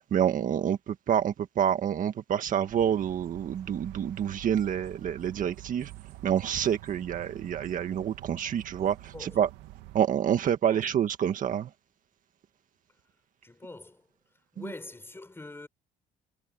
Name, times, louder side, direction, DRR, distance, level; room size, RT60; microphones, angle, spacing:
voice 1, 0.1-5.9 6.2-9.5 9.9-11.7, right 9 dB, 50° right, 1.7 m, -27 dB
sound 1, 2.7-10.0, right 16 dB, 90° right, 2.6 m, -47 dB
voice 2, 13.4-14.0 14.5-15.7, left 2 dB, 15° left, 6.6 m, -44 dB
cardioid pair, 110°, 17 cm